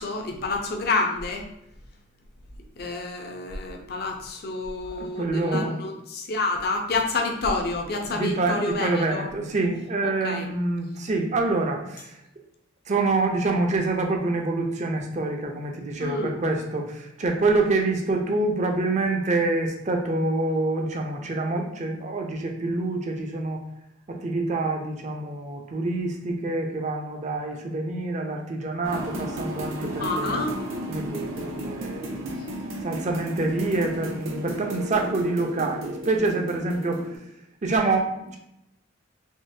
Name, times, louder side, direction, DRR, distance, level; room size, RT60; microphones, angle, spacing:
voice 1, 0.0-1.5 2.8-9.3 10.0-10.5 16.0-16.3 30.0-30.5, left 3 dB, 55° left, 3 dB, 0.6 m, -28 dB
voice 2, 4.9-5.7 8.1-12.2 12.9-23.6 24.1-30.4 30.9-32.5 32.8-37.0 37.6-38.4, right 2 dB, 35° right, 2 dB, 0.5 m, -26 dB
sound 1, 28.8-37.2, right 1 dB, 80° right, 0.6 m, -34 dB
3.7 x 2.9 x 2.6 m, 0.81 s
head